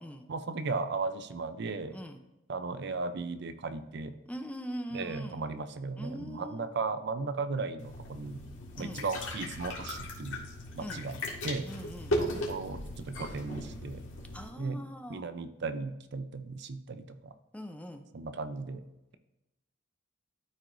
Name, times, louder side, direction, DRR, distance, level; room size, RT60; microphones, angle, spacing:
voice 1, 0.3-2.0 2.5-4.1 4.9-8.4 8.8-10.4 10.8-11.2 11.4-11.7 12.2-14.0 14.6-14.8 15.1-17.3 18.1-18.8, right 4 dB, 60° right, 10 dB, 0.6 m, -36 dB
voice 2, 4.3-5.4 6.0-6.7 8.8-9.0 10.8-11.0 11.6-12.2 14.3-15.2 17.5-18.1, equal, 5° left, 5 dB, 0.6 m, -41 dB
sound 1, 7.8-14.5, left 1 dB, 90° left, 1.9 m, -37 dB
12.5 x 4.7 x 2.6 m, 0.96 s
head